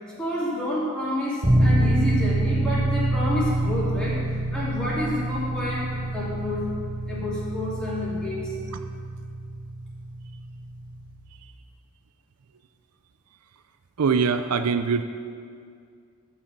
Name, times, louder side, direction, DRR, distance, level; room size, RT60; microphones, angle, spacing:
voice 1, 0.2-4.3 4.5-6.8 7.1-8.5, left 1 dB, 5° left, -8 dB, 2.6 m, -29 dB
sound 1, 1.4-11.2, right 1 dB, 20° right, 1.6 m, -26 dB
voice 2, 14.0-15.0, right 5 dB, 90° right, 9 dB, 0.5 m, -22 dB
11.5 x 4.9 x 7.3 m, 2.2 s
head